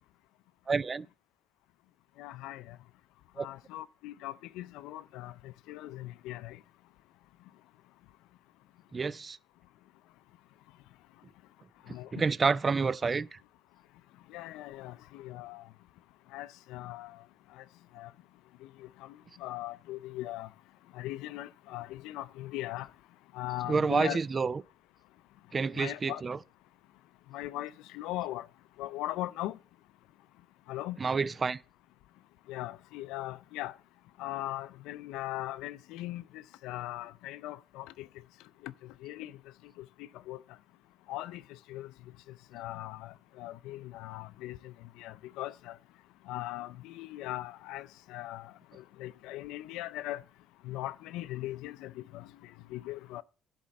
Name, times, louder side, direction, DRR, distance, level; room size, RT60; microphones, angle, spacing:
voice 1, 0.7-1.1 3.4-3.5 8.9-9.4 12.1-13.4 23.7-24.6 25.5-26.4 31.0-31.6, right 4 dB, 30° right, 0.4 m, -29 dB
voice 2, 2.2-2.8 3.4-5.3 5.7-6.6 11.9-12.1 14.3-15.6 16.3-17.1 18.0-18.1 19.4-20.5 21.0-22.9 23.3-24.2 25.8-26.2 27.3-28.5 28.8-29.5 30.7-31.0 32.5-33.7 34.2-36.2 36.6-38.1 38.6-38.7 39.0-39.3 40.3-40.4 41.1-41.4 41.7-41.9 42.5-44.7 45.0-45.7 46.3-48.5 49.0-50.2 50.7-52.2 52.7-53.2, left 16 dB, 85° left, 0.4 m, -39 dB
11.5 x 4.4 x 7.6 m
cardioid pair, 90°, 0 cm